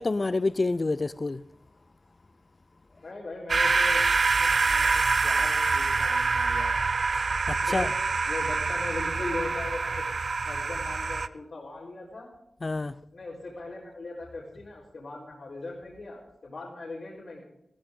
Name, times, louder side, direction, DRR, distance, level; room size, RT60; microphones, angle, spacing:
voice 1, 0.0-1.4 7.5-7.9 12.6-12.9, left 3 dB, 45° left, 0.4 m, -27 dB
voice 2, 3.0-4.0 4.4-6.9 7.7-7.9 8.3-10.0 10.4-12.3 13.1-17.4, left 2 dB, 75° left, 4.1 m, -39 dB
sound 1, 3.5-11.3, right 4 dB, 65° right, 0.5 m, -25 dB
15.5 x 14.5 x 3.7 m
wide cardioid pair, 70°, 0 cm